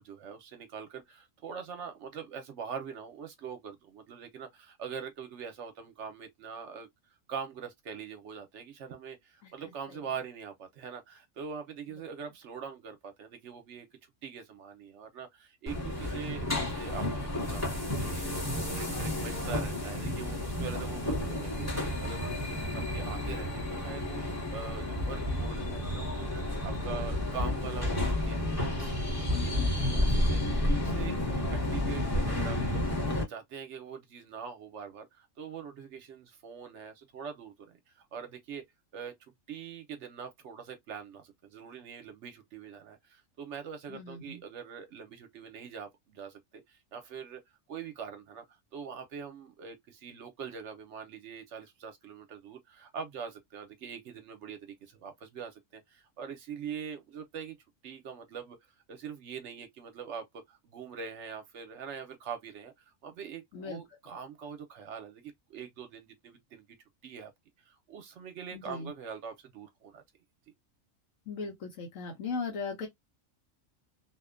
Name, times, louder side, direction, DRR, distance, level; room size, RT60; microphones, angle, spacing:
voice 1, 0.0-6.9 7.3-13.9 14.2-24.2 24.5-26.3 26.6-31.2 31.5-38.6 38.9-39.1 39.5-47.4 47.7-57.6 57.8-58.6 58.9-66.7 67.0-67.3 67.6-70.0, right 6 dB, 65° right, 0.9 m, -43 dB
sound 1, 15.7-33.2, left 1 dB, 15° left, 1.0 m, -31 dB
voice 2, 22.6-23.2 31.3-31.4 43.9-44.4 63.5-63.8 68.5-68.9 71.3-72.9, left 4 dB, 75° left, 1.1 m, -39 dB
2.6 x 2.1 x 2.4 m
omnidirectional pair, 1.4 m